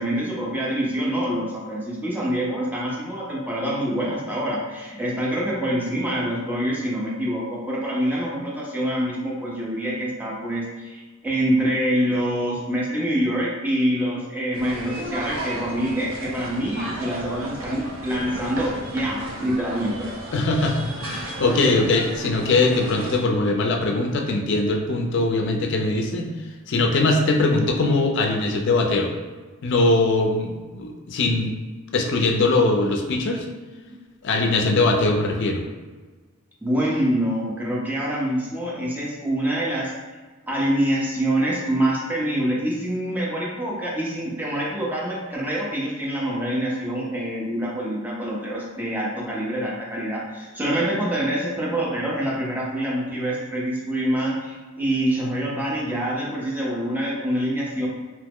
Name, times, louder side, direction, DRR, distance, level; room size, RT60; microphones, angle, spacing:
voice 1, 0.0-20.1 36.6-39.9 40.5-57.9, right 1 dB, 10° right, -5 dB, 0.5 m, -25 dB
sound 1, 14.5-23.2, right 1 dB, 65° right, 0.6 m, -34 dB
voice 2, 20.3-26.3 26.7-29.1 29.6-31.5 31.9-33.5 34.2-35.6, left 2 dB, 55° left, 2 dB, 0.4 m, -21 dB
2.9 x 2.0 x 3.6 m, 1.3 s
head